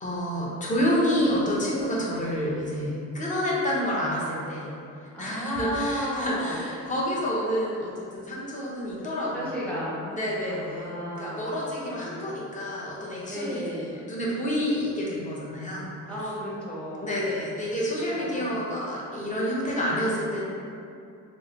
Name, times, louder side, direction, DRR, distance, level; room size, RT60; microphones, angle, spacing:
voice 1, 0.0-4.7 5.2-9.7 10.1-15.9 17.0-20.5, equal, 25° left, -5 dB, 0.8 m, -29 dB
voice 2, 5.1-6.9 9.0-10.1 10.5-12.4 13.3-14.0 16.1-17.3 18.1-18.6, equal, 5° left, -7 dB, 0.9 m, -34 dB
3.6 x 2.0 x 2.9 m, 2.5 s
cardioid pair, 90°, 30 cm